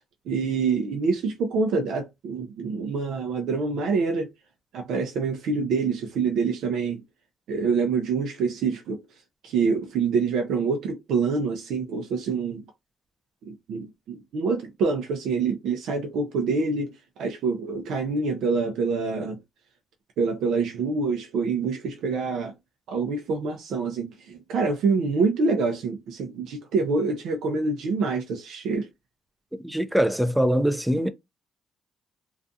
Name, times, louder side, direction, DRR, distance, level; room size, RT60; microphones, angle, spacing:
voice 1, 0.3-4.3 4.7-7.0 7.5-9.0 9.4-12.7 13.5-19.4 20.2-22.5 22.9-28.9, right 4 dB, 80° right, 0.4 m, -26 dB
voice 2, 29.6-31.1, equal, 5° right, 0.4 m, -22 dB
2.4 x 2.3 x 2.6 m
cardioid pair, 90°, 0 cm